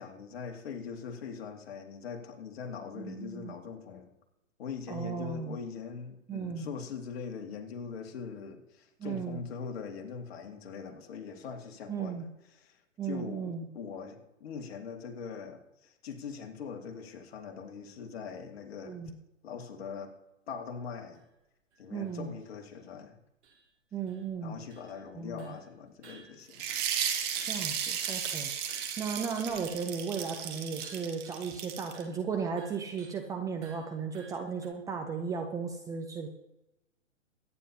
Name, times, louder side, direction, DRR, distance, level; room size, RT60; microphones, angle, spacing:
voice 1, 0.0-4.1 4.6-12.3 12.5-12.8 13.0-19.0 19.4-20.1 20.5-21.2 21.8-23.2 24.4-26.7, left 6 dB, 50° left, 4 dB, 2.2 m, -42 dB
voice 2, 2.9-3.6 4.9-5.6 6.3-6.7 9.0-9.4 11.9-12.3 13.0-13.6 18.9-19.1 21.9-22.3 23.9-24.6 25.1-25.5 27.5-28.5 29.0-36.3, right 6 dB, 10° right, 3 dB, 0.6 m, -35 dB
sound 1, 21.1-21.2 21.7-21.8 22.4-22.5 22.7-22.8 23.4-23.7 24.1-25.1 25.4-25.7 26.0-27.1 27.3-29.9 30.2-30.5 30.8-31.5 31.9-32.2 32.6-33.2 33.6-34.7, right 4 dB, 60° right, 3.9 m, -55 dB
sound 2, 26.5-32.0, right 8 dB, 25° right, 1.7 m, -34 dB
23.5 x 9.9 x 2.9 m, 0.94 s
hypercardioid pair, 125°, 39 cm